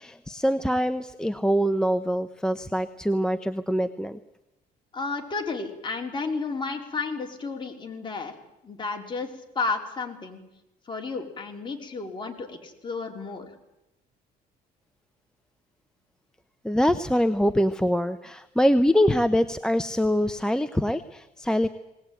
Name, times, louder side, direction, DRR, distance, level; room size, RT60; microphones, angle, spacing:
voice 1, 0.0-4.2 16.6-21.7, equal, 5° left, 10 dB, 0.7 m, -24 dB
voice 2, 4.9-8.3 8.6-9.3 9.6-10.4 10.9-13.5, left 4 dB, 30° left, 2 dB, 3.8 m, -32 dB
19.5 x 19.5 x 9.1 m, 0.94 s
cardioid pair, 110°, 17 cm